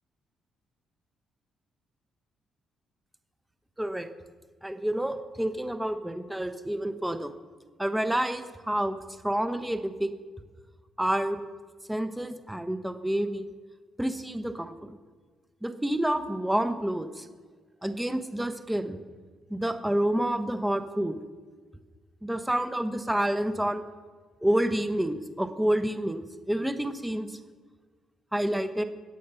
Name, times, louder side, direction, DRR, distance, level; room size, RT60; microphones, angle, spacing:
voice 1, 3.8-4.1 4.6-7.3 7.8-9.0 9.2-10.1 11.0-11.4 11.9-13.5 14.0-15.0 15.6-17.3 17.8-19.0 19.5-21.2 22.2-23.8 24.4-27.3 28.3-28.8, right 1 dB, 5° right, 9 dB, 1.2 m, -28 dB
22.0 x 8.4 x 5.8 m, 1.5 s
cardioid pair, 90°, 0 cm